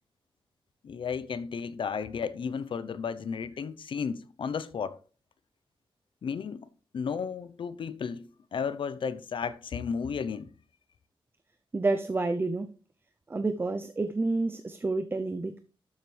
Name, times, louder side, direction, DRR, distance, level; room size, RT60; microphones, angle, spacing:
voice 1, 0.8-5.0 6.2-10.5, left 6 dB, 65° left, 0.7 m, -34 dB
voice 2, 11.7-12.7 13.3-15.6, right 3 dB, 25° right, 0.6 m, -29 dB
12.0 x 7.7 x 3.3 m
wide cardioid pair, 125°, 9 cm